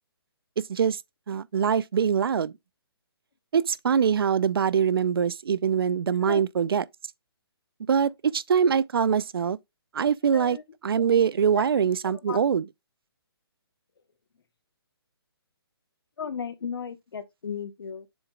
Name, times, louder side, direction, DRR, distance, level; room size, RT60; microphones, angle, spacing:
voice 1, 0.7-1.0 1.3-2.5 3.5-6.8 7.9-9.6 9.9-10.6 10.8-12.6, right 7 dB, 65° right, 0.5 m, -23 dB
voice 2, 10.3-10.6 11.5-11.7 12.0-12.4 16.2-18.1, left 7 dB, 65° left, 1.1 m, -35 dB
7.0 x 4.1 x 3.8 m
hypercardioid pair, 170°, 13 cm